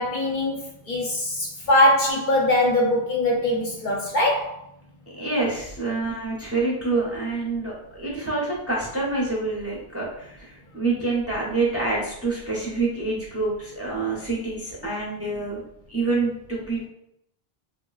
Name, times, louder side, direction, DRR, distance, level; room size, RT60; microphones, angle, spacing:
voice 1, 0.0-4.6, left 1 dB, 60° left, -2 dB, 0.6 m, -22 dB
voice 2, 5.1-15.6 15.9-16.9, right 3 dB, 20° right, -4 dB, 0.5 m, -27 dB
3.8 x 2.1 x 2.3 m, 0.77 s
omnidirectional pair, 1.0 m